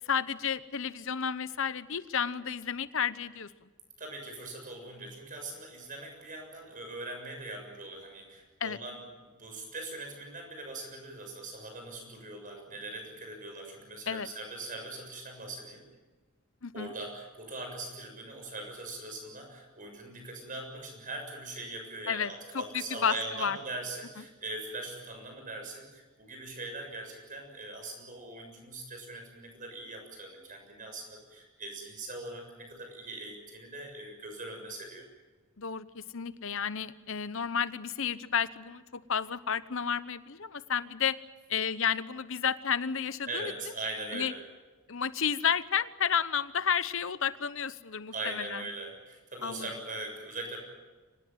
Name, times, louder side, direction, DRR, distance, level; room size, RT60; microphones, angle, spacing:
voice 1, 0.1-3.5 8.6-8.8 14.1-14.3 16.6-16.9 22.1-23.6 35.6-41.2 41.5-43.5 44.1-44.3 44.9-48.6 49.4-49.7, left 7 dB, 60° left, 15 dB, 1.0 m, -31 dB
voice 2, 4.0-15.8 16.7-35.1 43.3-44.4 48.1-50.6, right 2 dB, 35° right, 3 dB, 7.0 m, -41 dB
25.0 x 19.0 x 9.3 m, 1.3 s
head